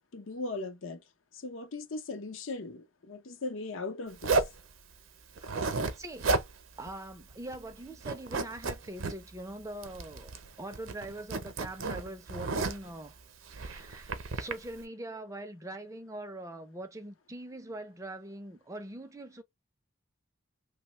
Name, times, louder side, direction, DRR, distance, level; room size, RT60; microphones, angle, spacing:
voice 1, 0.1-1.0 1.3-4.4, left 3 dB, 70° left, 0.7 m, -38 dB
Zipper (clothing), 4.2-4.6 5.4-5.9 6.2-6.5 6.9-7.0 7.3-7.7 8.0-9.1 9.8-10.5 10.7-12.9 13.5-14.5, right 3 dB, 70° right, 0.6 m, -32 dB
voice 2, 6.0-6.4 6.8-10.3 10.6-13.1 13.5-19.4, right 1 dB, 15° right, 0.4 m, -42 dB
3.0 x 2.1 x 2.9 m
head